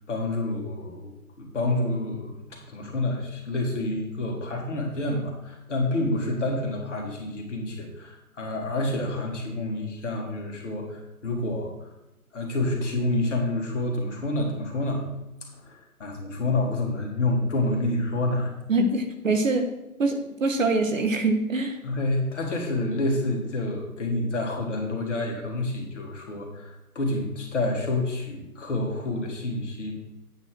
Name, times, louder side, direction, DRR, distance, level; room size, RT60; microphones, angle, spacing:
voice 1, 0.1-1.1 1.4-11.9 12.3-15.0 15.5-18.5 21.8-30.0, left 2 dB, 50° left, 0 dB, 2.4 m, -28 dB
voice 2, 18.7-19.6 20.0-21.8, right 2 dB, 55° right, 5 dB, 1.4 m, -24 dB
8.8 x 4.2 x 6.3 m, 0.98 s
figure-of-eight pair, 155°, 45 cm